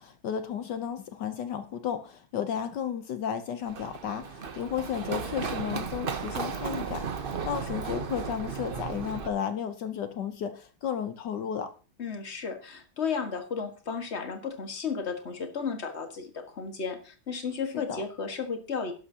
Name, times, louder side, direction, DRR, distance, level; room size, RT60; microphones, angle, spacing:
voice 1, 0.0-11.7 17.7-18.0, left 8 dB, 65° left, 1.3 m, -33 dB
Run, 3.7-9.3, right 5 dB, 85° right, 0.4 m, -35 dB
voice 2, 12.0-18.9, left 5 dB, 35° left, 1.8 m, -34 dB
12.5 x 11.5 x 2.8 m
omnidirectional pair, 2.2 m